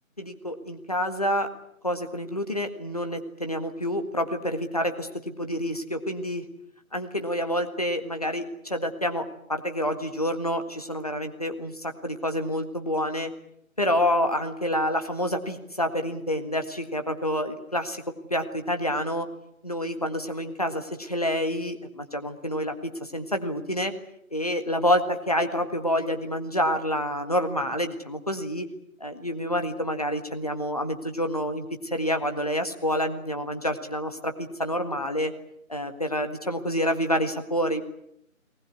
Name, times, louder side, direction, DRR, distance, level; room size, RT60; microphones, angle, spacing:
voice 1, 0.2-1.5 1.8-6.5 6.9-13.3 13.8-18.0 18.3-19.3 19.6-23.9 24.3-28.7 29.0-35.3 35.7-37.9, equal, 25° left, 7 dB, 1.8 m, -28 dB
23.0 x 19.5 x 9.7 m, 0.75 s
figure-of-eight pair, 170°, 42 cm